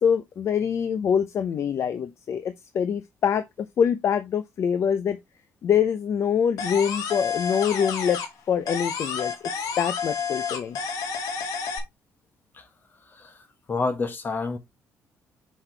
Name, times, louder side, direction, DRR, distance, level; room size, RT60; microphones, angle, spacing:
voice 1, 0.0-3.4 3.8-5.2 5.6-8.2 8.5-9.3 9.8-10.8, left 7 dB, 50° left, 0.7 m, -24 dB
sound 1, 6.6-8.4 8.7-11.8, left 6 dB, 85° left, 2.2 m, -30 dB
voice 2, 13.7-14.6, left 3 dB, 35° left, 1.6 m, -28 dB
6.4 x 5.8 x 3.3 m
cardioid pair, 120°, 6 cm